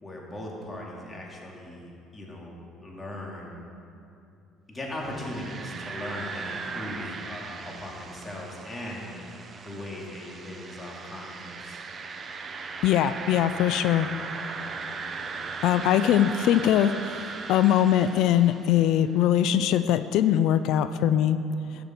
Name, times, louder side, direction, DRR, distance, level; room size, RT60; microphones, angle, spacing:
voice 1, 0.0-3.6 4.7-9.1 9.6-11.8, left 1 dB, 25° left, -2 dB, 2.3 m, -38 dB
sound 1, 5.0-18.9, right 4 dB, 40° right, 0.7 m, -38 dB
voice 2, 12.8-14.1 15.6-16.9 17.5-21.4, left 11 dB, 70° left, 12 dB, 0.3 m, -21 dB
12.5 x 6.9 x 4.5 m, 2.6 s
supercardioid pair, 90°, 0 cm